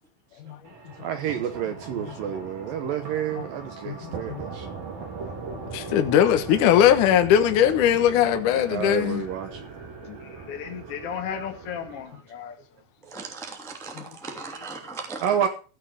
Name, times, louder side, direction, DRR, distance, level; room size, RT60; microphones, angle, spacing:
sound 1, 0.6-12.0, right 4 dB, 55° right, 4.9 m, -39 dB
voice 1, 1.0-4.7 8.7-9.6 15.2-15.5, right 9 dB, 75° right, 2.1 m, -29 dB
voice 2, 2.3-2.7 10.2-12.5, left 8 dB, 40° left, 2.4 m, -35 dB
voice 3, 3.9-4.4 5.7-9.2 10.1-10.2 14.0-14.1, left 10 dB, 70° left, 2.0 m, -20 dB
voice 4, 13.1-15.5, right 4 dB, ahead, 1.2 m, -38 dB
16.0 x 6.5 x 6.4 m
omnidirectional pair, 5.2 m